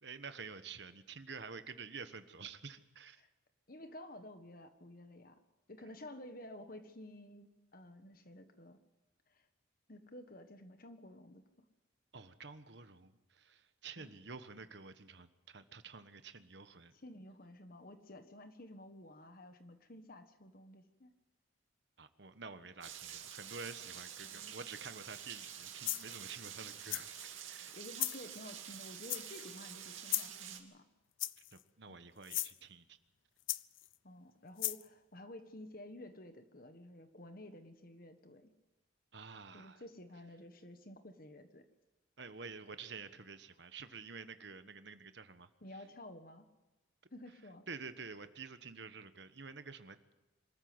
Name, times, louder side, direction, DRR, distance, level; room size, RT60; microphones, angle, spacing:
voice 1, 0.0-3.2 12.1-16.9 22.0-27.8 31.4-33.0 39.1-39.8 42.2-45.8 47.7-50.2, right 5 dB, 60° right, 10 dB, 1.3 m, -49 dB
voice 2, 3.7-5.4 5.7-8.8 9.3-9.4 9.9-11.7 14.0-14.1 17.0-21.1 24.2-24.6 27.7-30.8 31.9-32.0 34.0-38.5 39.5-41.7 45.6-46.5 47.1-47.6, left 1 dB, 45° left, 8 dB, 1.5 m, -52 dB
Rain, 22.8-30.6, right 9 dB, 85° right, 2.6 m, -48 dB
sound 1, 25.3-25.5 25.8-26.2 26.9-27.3 27.9-28.2 29.1-29.5 30.1-30.4 31.2-31.6 32.2-32.5 33.5-33.9 34.6-34.8, left 17 dB, 80° left, 0.6 m, -37 dB
25.5 x 14.0 x 7.9 m, 1.1 s
head